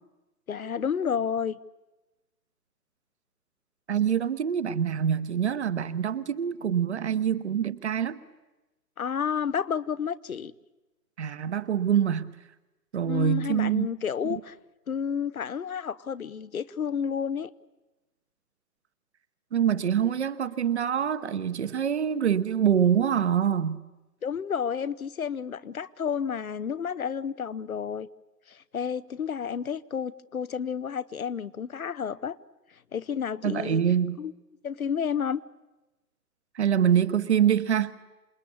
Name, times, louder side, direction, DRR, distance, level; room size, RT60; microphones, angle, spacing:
voice 1, 0.5-1.6 9.0-10.5 13.1-14.5 14.9-17.5 24.2-28.1 28.5-32.4 32.9-33.8 34.2-34.3 34.6-35.4, left 7 dB, 60° left, 0.9 m, -31 dB
voice 2, 3.9-8.2 11.2-12.3 12.9-13.9 14.2-14.4 19.5-23.8 33.4-34.2 36.5-37.9, right 8 dB, 45° right, 1.0 m, -25 dB
27.0 x 20.0 x 8.6 m
figure-of-eight pair, 130°, 48 cm